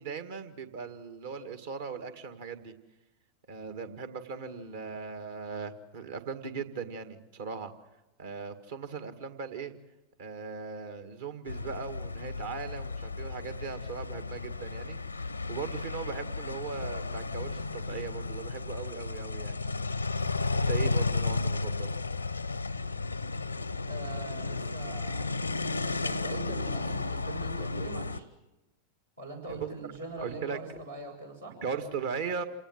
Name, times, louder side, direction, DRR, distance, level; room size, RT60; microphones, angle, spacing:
voice 1, 0.0-2.8 3.5-7.7 8.2-9.7 10.2-19.6 20.5-21.9 29.5-29.7 30.2-30.8 31.6-32.4, right 6 dB, 60° right, 9 dB, 1.9 m, -38 dB
sound 1, 11.5-28.2, left 3 dB, 85° left, 0.8 m, -33 dB
voice 2, 23.9-25.3 25.8-28.2 29.2-31.6, right 3 dB, 80° right, -1 dB, 6.7 m, -42 dB
27.5 x 18.5 x 7.8 m, 1.0 s
figure-of-eight pair, 90°, 0 cm